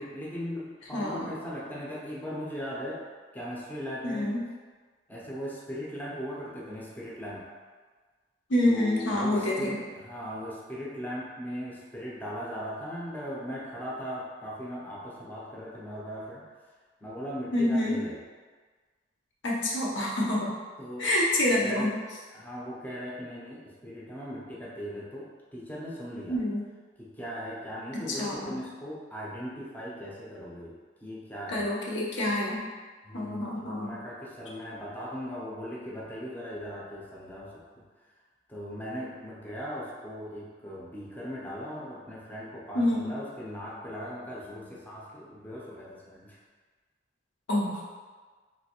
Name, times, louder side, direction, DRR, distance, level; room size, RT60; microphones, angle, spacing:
voice 1, 0.0-3.0 3.3-4.3 5.1-7.5 8.7-16.5 17.0-18.2 20.8-21.1 21.5-21.9 22.3-26.4 27.0-30.8 31.0-31.7 33.0-37.6 38.5-46.4, equal, 10° left, -6 dB, 0.5 m, -38 dB
voice 2, 0.9-1.3 4.0-4.4 8.5-9.8 17.5-18.0 19.4-20.5 21.0-21.9 26.3-26.6 27.9-28.5 31.5-32.7 33.1-34.0 42.7-43.1 47.5-47.8, left 1 dB, 85° left, -4 dB, 0.7 m, -27 dB
3.1 x 2.6 x 2.8 m, 1.4 s
head